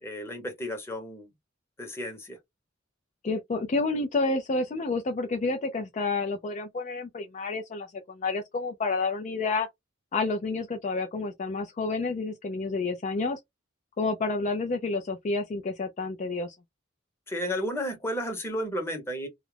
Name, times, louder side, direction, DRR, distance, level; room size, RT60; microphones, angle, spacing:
voice 1, 0.0-1.3 1.8-2.4 17.3-19.3, equal, 15° left, 0.8 m, -33 dB
voice 2, 3.2-9.7 10.1-13.4 14.0-16.5, left 3 dB, 40° left, 0.3 m, -29 dB
2.3 x 2.0 x 3.1 m
head